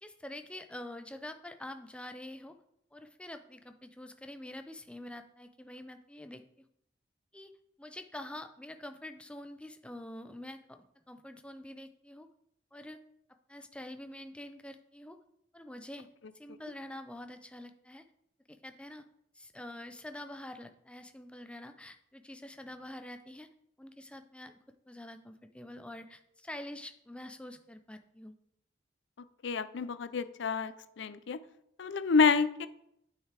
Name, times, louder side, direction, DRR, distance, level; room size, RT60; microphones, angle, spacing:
voice 1, 0.0-2.6 2.9-6.7 7.3-7.5 7.8-12.3 12.7-13.0 13.5-15.2 15.5-16.1 16.4-18.0 18.5-19.0 19.3-23.5 23.8-24.5 24.9-28.3, left 1 dB, 5° left, 8 dB, 0.4 m, -46 dB
voice 2, 29.4-31.4 31.8-32.7, left 5 dB, 65° left, 14 dB, 0.5 m, -28 dB
9.0 x 5.6 x 3.4 m, 0.76 s
head